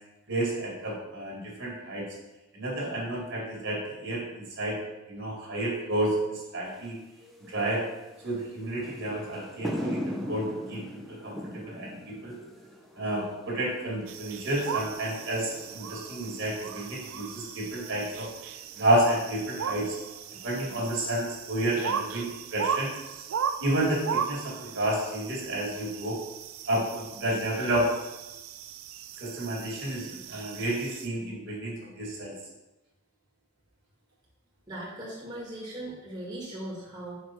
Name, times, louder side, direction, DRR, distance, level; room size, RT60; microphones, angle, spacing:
voice 1, 0.3-2.1 2.5-4.8 5.1-7.0 7.5-7.8 8.2-12.4 13.0-18.3 18.8-20.0 20.4-22.9 23.6-26.2 26.7-27.9 29.2-32.3, right 1 dB, 60° right, -3 dB, 1.9 m, -30 dB
sound 1, 6.7-25.3, equal, ahead, 0.6 m, -43 dB
sound 2, 14.1-31.1, right 7 dB, 80° right, 0.4 m, -37 dB
voice 2, 34.7-37.2, right 1 dB, 20° right, -6 dB, 1.3 m, -39 dB
5.1 x 4.7 x 4.3 m, 1.0 s
head